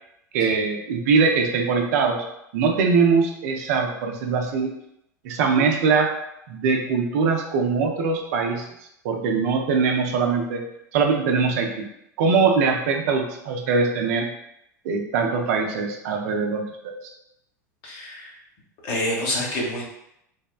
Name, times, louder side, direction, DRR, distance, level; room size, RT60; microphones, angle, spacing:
voice 1, 0.3-2.2 2.5-4.7 5.2-6.1 6.5-8.7 9.0-10.6 10.9-11.9 12.2-14.3 14.8-16.9, right 5 dB, 60° right, 2 dB, 0.4 m, -22 dB
voice 2, 17.8-18.3 18.8-19.8, left 1 dB, 50° left, -3 dB, 1.0 m, -27 dB
3.3 x 2.1 x 2.3 m, 0.79 s
figure-of-eight pair, 80°, 10 cm